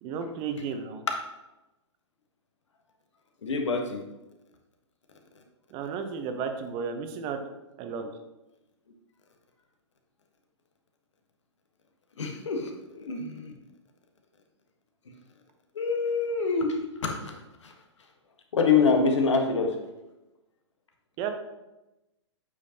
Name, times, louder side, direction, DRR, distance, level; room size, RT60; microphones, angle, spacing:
voice 1, 0.0-1.0 5.7-7.4 7.8-8.0 21.2-21.3, right 6 dB, 35° right, 6 dB, 0.9 m, -33 dB
voice 2, 3.4-4.0 12.2-13.6 15.1-15.2 15.7-17.7 18.5-19.8, left 4 dB, 75° left, 3 dB, 1.3 m, -26 dB
8.5 x 5.0 x 2.9 m, 1.0 s
hypercardioid pair, 120°, 15 cm